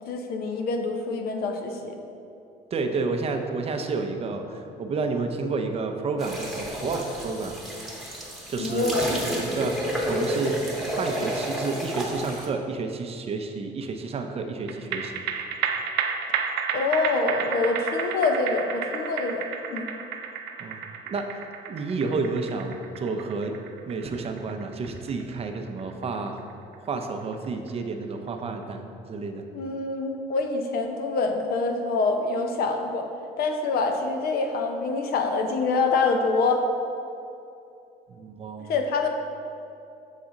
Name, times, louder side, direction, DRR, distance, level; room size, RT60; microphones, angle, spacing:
voice 1, 0.1-2.0 8.6-9.2 16.7-19.9 29.5-33.1 33.4-36.7 38.7-39.1, left 3 dB, 65° left, 4 dB, 0.7 m, -26 dB
voice 2, 2.7-7.6 8.5-10.6 10.9-15.1 20.6-20.8 21.1-21.4 21.7-23.5 23.9-26.4 26.8-29.4 38.1-38.7, right 4 dB, 35° right, 5 dB, 0.6 m, -30 dB
sound 1, 6.2-12.5, equal, ahead, 1.1 m, -31 dB
sound 2, 14.7-27.3 27.7-27.8, right 7 dB, 90° right, 0.5 m, -32 dB
7.2 x 4.2 x 3.8 m, 2.7 s
cardioid pair, 110°, 17 cm